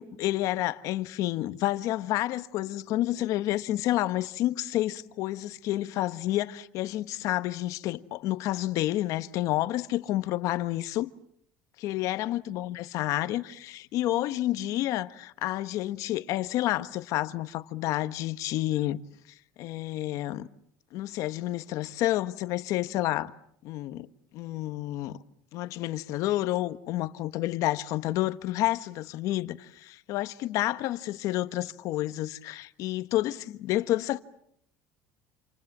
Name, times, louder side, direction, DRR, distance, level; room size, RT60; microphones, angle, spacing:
voice 1, 0.0-11.1 11.8-19.0 19.6-20.5 20.9-23.3 23.6-24.1 24.3-25.2 25.5-34.2, left 15 dB, 60° left, 1.3 m, -29 dB
28.5 x 28.0 x 7.4 m
cardioid pair, 150°, 6 cm